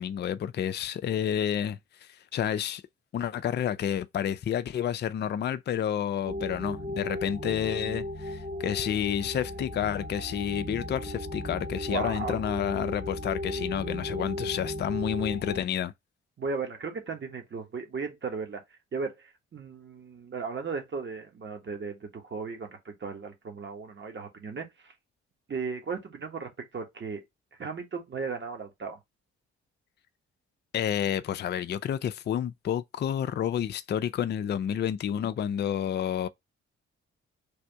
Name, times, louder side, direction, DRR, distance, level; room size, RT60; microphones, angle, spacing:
voice 1, 0.0-2.8 3.1-15.9 30.7-36.3, left 9 dB, 35° left, 0.4 m, -30 dB
sound 1, 6.3-15.7, left 1 dB, 20° right, 1.0 m, -35 dB
voice 2, 11.9-12.4 16.4-18.6 18.9-24.9 25.5-27.2 27.6-29.0, right 5 dB, 35° right, 1.4 m, -36 dB
3.4 x 2.6 x 4.5 m
hypercardioid pair, 45°, 32 cm